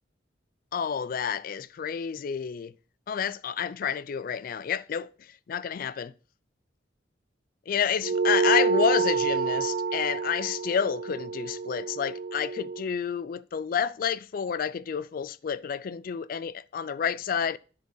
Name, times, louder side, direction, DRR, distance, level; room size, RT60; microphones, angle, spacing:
voice 1, 0.7-2.7 3.1-6.1 7.7-17.6, left 7 dB, 50° left, 0.3 m, -29 dB
sound 1, 8.0-12.8, right 5 dB, 50° right, 0.5 m, -28 dB
10.5 x 4.7 x 6.5 m
head